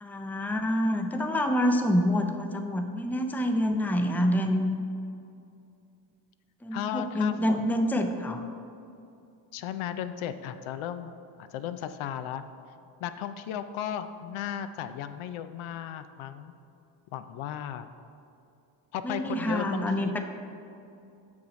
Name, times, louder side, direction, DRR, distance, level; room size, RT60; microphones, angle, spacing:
voice 1, 0.0-4.8 6.6-8.4 19.0-20.2, equal, 5° left, 5 dB, 0.5 m, -27 dB
voice 2, 6.7-7.6 9.5-11.1 11.4-12.4 13.0-16.5 17.1-17.9 18.9-20.1, left 9 dB, 75° left, 10 dB, 0.6 m, -35 dB
6.3 x 5.9 x 5.1 m, 2.6 s
supercardioid pair, 80°, 49 cm